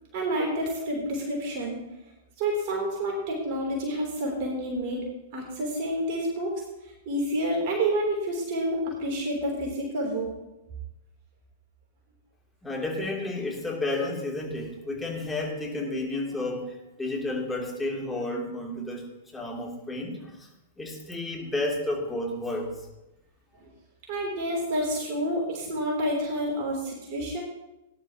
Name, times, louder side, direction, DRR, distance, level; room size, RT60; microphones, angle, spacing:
voice 1, 0.1-1.8 2.4-6.6 7.0-10.3 23.5-23.7 24.1-27.4, right 1 dB, 45° right, -1 dB, 3.4 m, -29 dB
voice 2, 12.6-19.0 19.3-20.5 20.8-22.7, left 2 dB, 10° left, -2 dB, 3.0 m, -31 dB
19.0 x 10.5 x 3.0 m, 0.95 s
figure-of-eight pair, 100°, 0 cm